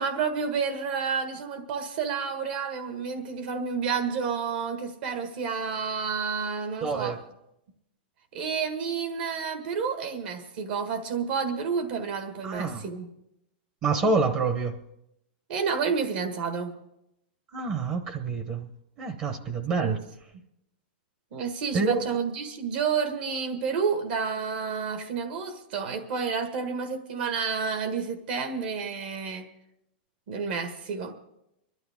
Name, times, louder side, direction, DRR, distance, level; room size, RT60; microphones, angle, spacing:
voice 1, 0.0-7.2 8.3-13.1 15.5-16.7 19.8-20.0 21.3-29.5 30.3-31.1, right 5 dB, 60° right, 6 dB, 1.6 m, -30 dB
voice 2, 6.8-7.2 12.4-12.8 13.8-14.8 17.5-18.7 19.0-20.0 21.7-22.1, right 4 dB, 30° right, 8 dB, 0.9 m, -27 dB
24.5 x 12.0 x 3.6 m, 0.83 s
supercardioid pair, 160°, 6 cm